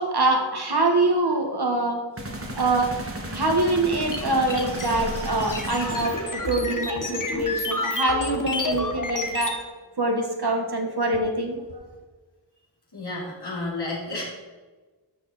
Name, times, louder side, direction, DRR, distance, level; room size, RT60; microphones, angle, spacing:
voice 1, 0.0-2.0 2.6-2.9 3.3-9.5 10.0-11.6, right 2 dB, 55° right, 2 dB, 1.6 m, -24 dB
sound 1, 2.2-6.9, right 1 dB, 30° right, 1.7 m, -35 dB
sound 2, 4.1-9.6, left 2 dB, 45° left, 1.3 m, -29 dB
voice 2, 12.9-14.2, left 2 dB, 60° left, -5 dB, 3.3 m, -31 dB
12.0 x 6.6 x 4.2 m, 1.3 s
wide cardioid pair, 50°, 45 cm